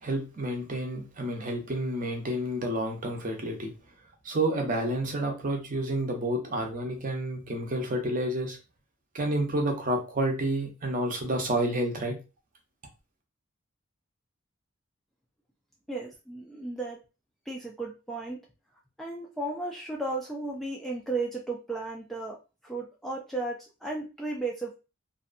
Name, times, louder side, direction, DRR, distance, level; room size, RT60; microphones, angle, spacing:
voice 1, 0.0-3.7 4.2-8.6 9.1-12.2, right 1 dB, 40° right, 0.6 m, -29 dB
voice 2, 15.9-17.0 17.5-18.4 19.0-22.4 22.6-24.7, right 2 dB, ahead, 0.3 m, -34 dB
2.6 x 2.2 x 2.5 m
head